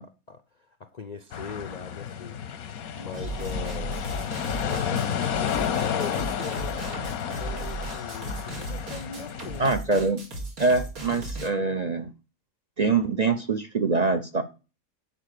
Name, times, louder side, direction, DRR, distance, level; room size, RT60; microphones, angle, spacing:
voice 1, 0.0-2.4 3.0-4.0 4.6-9.7, left 5 dB, 45° left, 0.5 m, -41 dB
sound 1, 1.3-9.7, left 8 dB, 90° left, 1.3 m, -31 dB
sound 2, 3.1-11.5, right 2 dB, 85° right, 2.9 m, -36 dB
voice 2, 9.6-10.2 10.6-12.1 12.8-14.4, right 3 dB, 40° right, 0.7 m, -24 dB
10.0 x 4.9 x 6.6 m
omnidirectional pair, 1.5 m